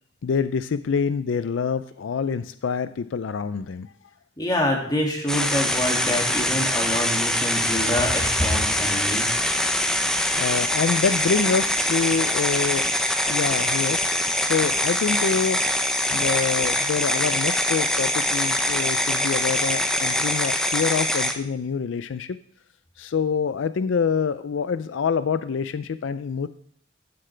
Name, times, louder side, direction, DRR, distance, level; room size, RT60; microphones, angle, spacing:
voice 1, 0.2-3.9 10.1-12.8 13.3-14.0 14.4-15.6 16.1-22.4 23.0-26.5, left 6 dB, 80° left, 13 dB, 0.4 m, -26 dB
voice 2, 4.4-9.3, left 1 dB, 20° left, -1 dB, 2.4 m, -26 dB
sound 1, 5.3-21.3, left 1 dB, 5° left, 0.7 m, -23 dB
15.5 x 7.6 x 3.3 m, 0.64 s
head